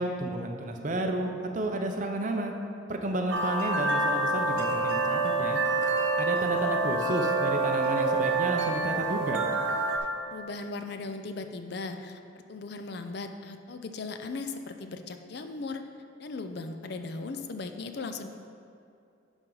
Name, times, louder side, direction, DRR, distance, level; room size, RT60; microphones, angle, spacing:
voice 1, 0.0-2.5 2.9-5.6 6.2-9.4, right 2 dB, 40° right, 3 dB, 0.6 m, -31 dB
sound 1, 3.3-10.0, right 2 dB, 80° right, 0.9 m, -27 dB
voice 2, 10.3-15.8 16.2-18.3, left 3 dB, 55° left, 7 dB, 0.5 m, -38 dB
11.0 x 4.4 x 3.9 m, 2.5 s
head